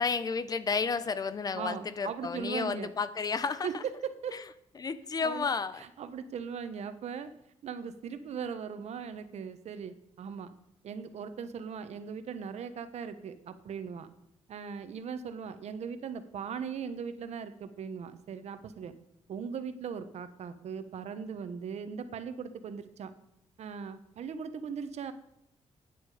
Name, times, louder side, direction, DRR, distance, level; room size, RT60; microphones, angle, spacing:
voice 1, 0.0-3.8 4.3-4.4 4.8-5.8, left 5 dB, 35° left, 14 dB, 0.7 m, -32 dB
voice 2, 1.5-2.9 3.6-3.8 4.2-4.4 5.2-5.5 5.8-7.3 7.6-10.5 10.8-14.1 14.5-18.9 19.3-23.1 23.6-25.1, right 6 dB, 70° right, 11 dB, 1.1 m, -39 dB
15.0 x 9.7 x 5.0 m, 0.80 s
wide cardioid pair, 155°, 12 cm